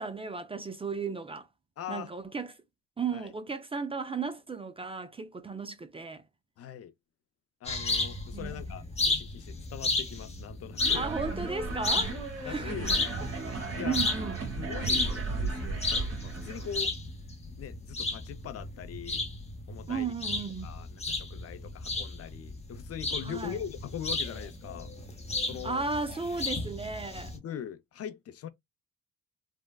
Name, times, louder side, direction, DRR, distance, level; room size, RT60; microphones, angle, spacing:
voice 1, 0.0-1.5 1.9-2.5 3.0-6.2 8.3-8.9 10.9-12.8 13.2-13.3 13.8-14.4 19.9-20.7 23.3-23.6 25.6-27.3, right 4 dB, 20° right, 0.4 m, -35 dB
voice 2, 1.8-2.1 3.1-3.2 6.6-6.9 7.6-11.1 12.4-12.9 13.7-14.0 14.6-16.9 17.6-19.3 19.7-20.1 20.6-24.9 25.5-25.8 27.3-28.5, left 9 dB, 55° left, 0.5 m, -41 dB
sound 1, 7.6-27.4, left 3 dB, 20° left, 0.8 m, -34 dB
sound 2, 10.8-16.9, right 3 dB, 50° right, 1.6 m, -35 dB
3.4 x 2.0 x 2.2 m
cardioid pair, 90°, 30 cm